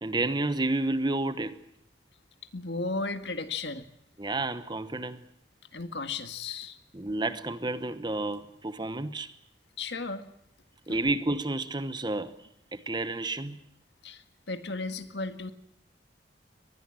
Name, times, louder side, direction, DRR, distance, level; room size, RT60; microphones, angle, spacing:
voice 1, 0.0-1.6 4.2-5.2 6.9-9.3 10.9-13.6, right 2 dB, 25° right, 1.1 m, -30 dB
voice 2, 2.5-3.9 5.7-6.8 9.8-10.3 10.9-11.0 14.0-15.5, left 3 dB, 65° left, 1.8 m, -35 dB
24.0 x 19.5 x 7.6 m
head